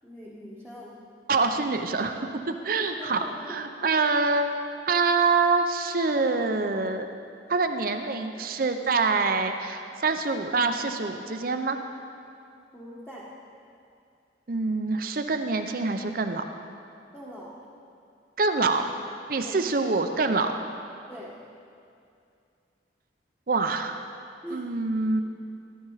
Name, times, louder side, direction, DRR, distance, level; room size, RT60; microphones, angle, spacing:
voice 1, 0.0-1.0 2.8-3.4 3.8-4.1 12.7-13.3 17.1-17.7 19.4-19.7 21.1-21.4 24.4-24.7, equal, 5° left, -7 dB, 1.4 m, -42 dB
voice 2, 1.3-3.2 3.5-4.5 4.9-7.1 7.5-11.8 14.5-16.4 18.4-18.8 19.3-20.5 23.5-24.0 24.5-25.2, right 4 dB, 50° right, 6 dB, 0.6 m, -25 dB
16.0 x 11.0 x 4.0 m, 2.5 s
head